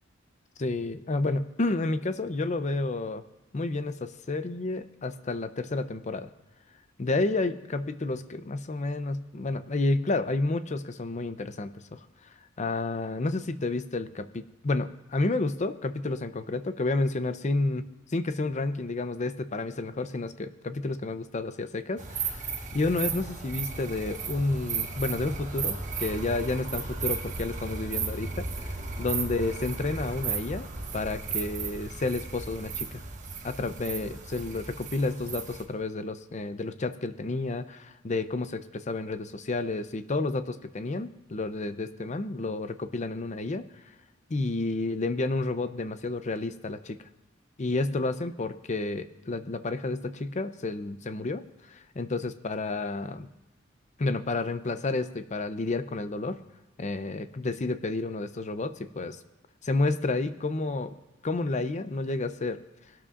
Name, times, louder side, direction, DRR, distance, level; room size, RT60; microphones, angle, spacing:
voice 1, 0.6-3.2 3.5-6.3 7.0-12.0 12.6-17.8 18.1-33.0 33.4-43.6 44.3-47.0 47.6-53.3 54.0-56.4 56.8-59.2 59.6-60.9 61.2-62.6, left 2 dB, 40° left, 11 dB, 0.6 m, -30 dB
sound 1, 22.0-35.6, right 4 dB, 40° right, 1.5 m, -35 dB
21.0 x 12.0 x 2.5 m, 1.0 s
head